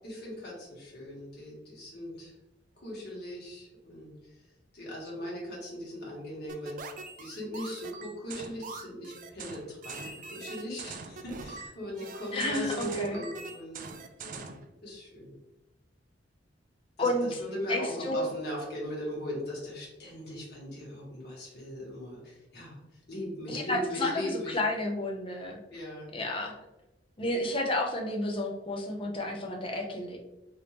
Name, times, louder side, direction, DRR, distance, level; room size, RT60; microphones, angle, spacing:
voice 1, 0.0-2.3 2.8-4.4 4.7-6.9 7.2-13.8 14.2-14.6 14.8-15.3 17.0-22.8 23.1-24.6 25.7-26.2, left 1 dB, 55° left, -4 dB, 1.4 m, -39 dB
sound 1, 6.5-14.7, right 4 dB, 45° right, 0.3 m, -43 dB
voice 2, 12.3-13.2 17.0-17.4 17.7-18.3 23.5-25.6 26.1-26.6 27.2-30.2, left 1 dB, 30° left, 1 dB, 0.5 m, -31 dB
3.4 x 2.6 x 2.9 m, 0.96 s
head